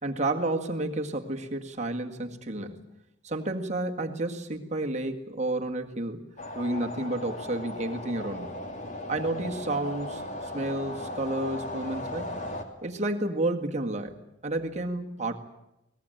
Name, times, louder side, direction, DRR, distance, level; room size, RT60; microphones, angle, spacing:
voice 1, 0.0-2.9 3.2-6.2 6.5-8.5 9.1-12.4 12.8-14.2 14.4-15.4, right 2 dB, 35° right, 4 dB, 1.8 m, -31 dB
sound 1, 6.4-12.6, left 1 dB, 40° left, 2.6 m, -37 dB
22.0 x 19.5 x 9.1 m, 0.89 s
head